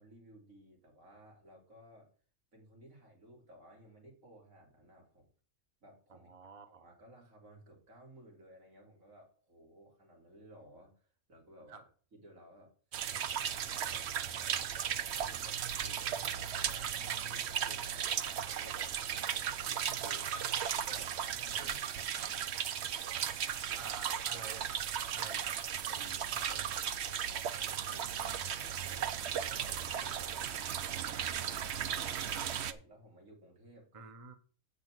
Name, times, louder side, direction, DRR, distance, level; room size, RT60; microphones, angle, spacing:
voice 1, 0.0-2.1 2.5-5.3 5.8-6.3 6.7-11.8 12.1-12.7 13.4-20.3 20.9-22.4 23.7-24.0 26.0-26.6 27.3-31.5 32.1-34.1, right 1 dB, 85° right, 0 dB, 3.7 m, -58 dB
voice 2, 6.1-6.9 11.7-11.8 20.0-20.2 21.6-21.7 23.8-24.7 25.1-25.6 25.9-26.8 27.8-27.9 32.3-32.5 33.9-34.3, right 5 dB, 30° right, 9 dB, 0.9 m, -50 dB
sound 1, 12.9-32.7, right 9 dB, 60° right, 0.9 m, -36 dB
8.0 x 5.8 x 6.2 m, 0.41 s
omnidirectional pair, 1.4 m